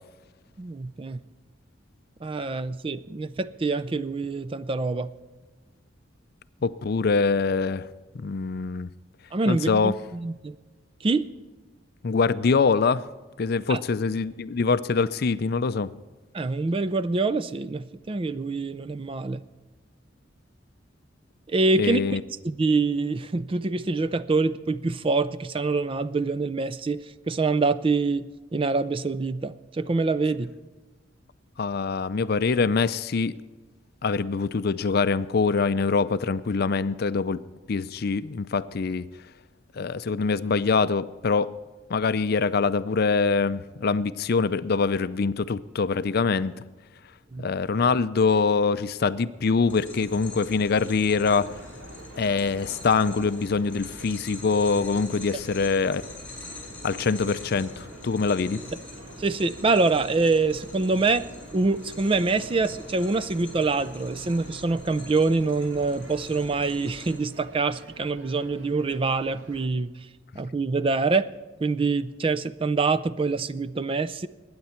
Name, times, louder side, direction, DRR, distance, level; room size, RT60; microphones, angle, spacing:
voice 1, 0.6-1.2 2.2-5.1 9.3-10.5 11.0-11.3 13.7-13.8 16.3-19.4 21.5-22.2 22.4-30.5 47.3-47.5 59.2-61.3 61.5-69.9 70.4-71.3 71.6-74.3, right 3 dB, 25° right, 0.4 m, -25 dB
voice 2, 6.6-7.9 8.1-8.9 9.5-9.9 12.0-13.0 13.4-15.9 21.8-22.2 31.6-33.3 34.0-37.4 37.7-39.0 39.8-41.5 41.9-46.7 47.4-51.5 52.2-56.0 56.8-58.6, left 4 dB, 50° left, 0.5 m, -24 dB
sound 1, 49.7-67.1, left 2 dB, 10° left, 5.4 m, -43 dB
sound 2, 51.2-69.7, right 1 dB, 75° right, 1.6 m, -48 dB
20.5 x 9.6 x 4.4 m
head